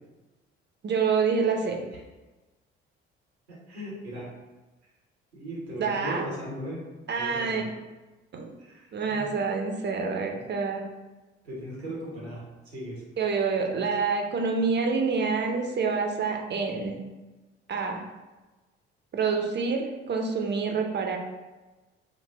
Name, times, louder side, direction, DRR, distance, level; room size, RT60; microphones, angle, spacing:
voice 1, 0.8-1.8 5.8-6.3 7.1-7.6 8.3-8.6 8.9-10.8 13.2-17.0 17.7-18.0 19.1-21.2, right 5 dB, 35° right, 2 dB, 0.7 m, -27 dB
voice 2, 3.7-4.2 5.3-6.8 7.2-7.7 8.6-9.3 11.4-13.0, equal, 85° right, -5 dB, 1.0 m, -38 dB
5.1 x 2.4 x 3.3 m, 1.1 s
figure-of-eight pair, 45°, 31 cm